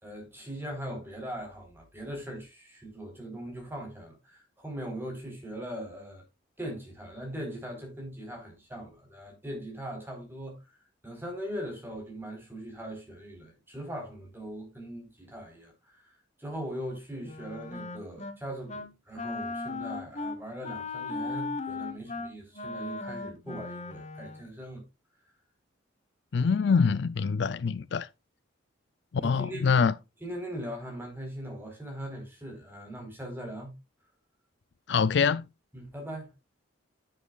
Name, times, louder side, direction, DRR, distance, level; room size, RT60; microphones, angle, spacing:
voice 1, 0.0-6.2 6.6-10.6 11.0-24.8 29.2-29.7 30.2-33.7 35.7-36.3, equal, 10° right, 4.3 m, -40 dB
Wind instrument woodwind instrument, 17.2-18.4 18.7-18.9 19.2-24.4, left 3 dB, 35° left, 1.2 m, -37 dB
voice 2, 26.3-28.1 29.2-29.9 34.9-35.4, left 5 dB, 60° left, 0.4 m, -24 dB
10.0 x 9.5 x 2.4 m
head